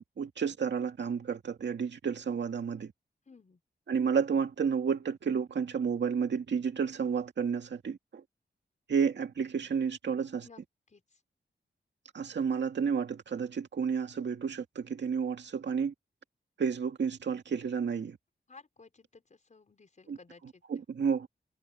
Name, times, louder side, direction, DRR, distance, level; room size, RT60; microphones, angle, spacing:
voice 1, 0.0-2.9 3.9-8.2 8.9-10.5 12.1-15.9 16.6-18.2 20.1-20.2 20.7-21.3, right 6 dB, 75° right, 2.1 m, -31 dB
voice 2, 3.3-3.6 10.4-10.6 10.9-11.2 18.5-20.6, left 4 dB, 40° left, 5.3 m, -56 dB
wide cardioid pair, 125°, 18 cm